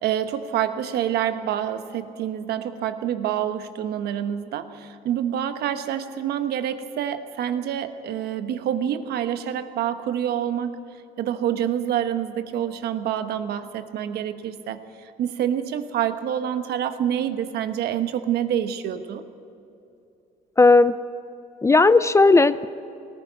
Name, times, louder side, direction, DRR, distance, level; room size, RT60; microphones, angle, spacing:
voice 1, 0.0-10.8 11.2-14.8 15.2-19.2, right 10 dB, 70° right, 9 dB, 1.2 m, -27 dB
voice 2, 20.6-20.9 21.6-22.7, left 3 dB, 15° left, 15 dB, 0.5 m, -15 dB
19.0 x 15.0 x 9.3 m, 2.7 s
cardioid pair, 110°, 17 cm